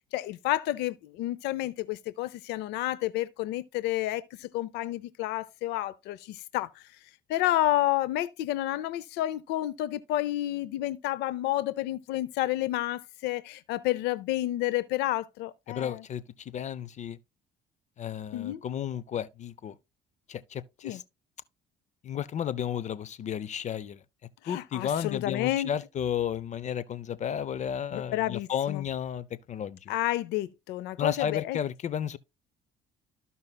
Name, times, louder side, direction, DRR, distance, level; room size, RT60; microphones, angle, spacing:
voice 1, 0.1-6.7 7.3-16.0 18.3-18.6 20.8-21.0 24.4-25.7 27.9-28.8 29.9-31.6, left 15 dB, 90° left, 0.6 m, -30 dB
voice 2, 15.7-17.2 18.0-19.7 20.3-21.0 22.0-24.0 24.4-29.9 31.0-32.2, left 9 dB, 45° left, 0.6 m, -33 dB
14.0 x 5.5 x 2.3 m
cardioid pair, 110°, 17 cm